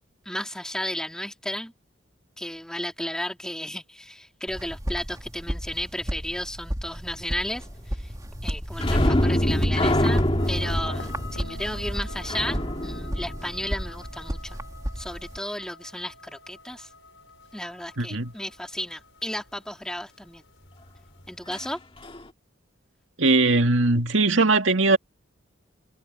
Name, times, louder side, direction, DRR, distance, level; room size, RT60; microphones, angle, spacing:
voice 1, 0.2-1.7 2.4-8.1 8.4-14.6 15.0-16.9 17.5-20.4 21.3-21.8, left 1 dB, 5° left, 2.5 m, -34 dB
sound 1, 4.5-15.4, equal, 20° right, 2.6 m, -33 dB
sound 2, 8.8-14.2 21.5-21.7 22.0-22.2, left 1 dB, 30° left, 2.2 m, -25 dB
sound 3, 10.4-19.7, left 2 dB, 75° left, 5.3 m, -46 dB
voice 2, 18.0-18.3 23.2-25.0, right 3 dB, 75° right, 2.1 m, -20 dB
head